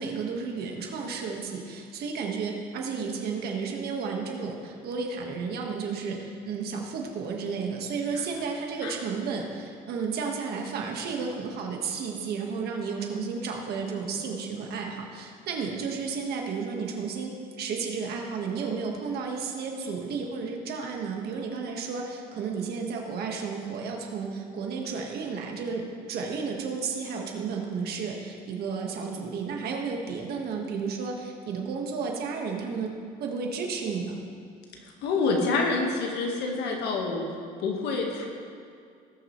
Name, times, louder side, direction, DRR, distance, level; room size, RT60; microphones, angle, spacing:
voice 1, 0.0-32.9 33.2-34.1, right 5 dB, 70° right, 1 dB, 1.6 m, -32 dB
voice 2, 34.7-37.3 37.6-38.3, left 3 dB, 80° left, 1 dB, 1.6 m, -27 dB
18.5 x 6.3 x 3.2 m, 2.4 s
cardioid pair, 110°, 17 cm